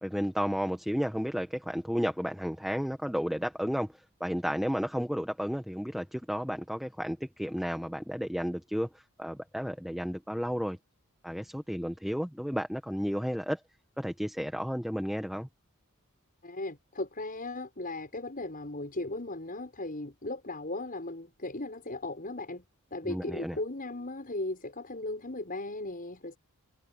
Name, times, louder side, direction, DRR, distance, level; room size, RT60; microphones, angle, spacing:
voice 1, 0.0-3.9 4.2-10.8 11.2-13.6 14.0-15.5 23.0-23.6, equal, ahead, 1.4 m, -32 dB
voice 2, 16.4-22.6 22.9-26.4, left 2 dB, 40° left, 6.9 m, -37 dB
head